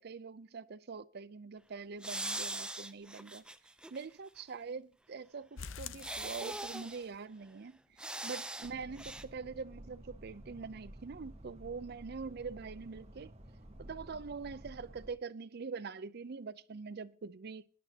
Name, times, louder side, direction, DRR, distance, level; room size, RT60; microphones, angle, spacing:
voice 1, 0.0-3.4 3.9-13.3 13.8-17.6, right 5 dB, 55° right, 0.5 m, -44 dB
sound 1, 2.0-4.0 4.4-4.5 6.0-7.0 8.0-8.7 9.0-9.2, right 2 dB, 5° right, 0.5 m, -41 dB
sound 2, 5.6-7.1 7.4-7.5 7.9-8.0 8.4-8.5, left 6 dB, 80° left, 0.7 m, -47 dB
sound 3, 8.6-15.1, right 1 dB, 35° right, 1.4 m, -52 dB
20.5 x 11.0 x 2.8 m
head